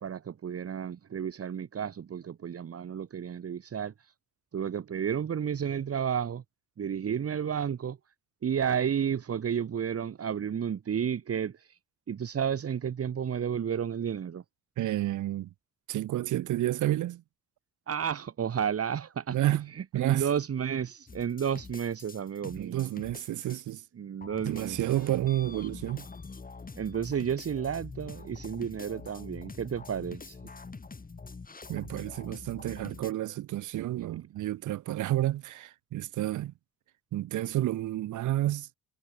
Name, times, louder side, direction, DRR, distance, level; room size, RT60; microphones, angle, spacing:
voice 1, 0.0-4.1 4.5-6.4 6.8-8.0 8.4-11.8 12.1-14.4 17.9-22.9 24.0-24.8 26.8-30.4, right 8 dB, 50° right, 2.1 m, -32 dB
voice 2, 14.8-15.5 15.9-17.2 19.3-20.3 22.4-23.8 24.4-26.1 31.7-36.5 37.1-38.7, right 14 dB, 75° right, 0.9 m, -30 dB
sound 1, 21.1-23.8 24.2-33.1, left 4 dB, 30° left, 4.3 m, -45 dB
cardioid pair, 85°, 31 cm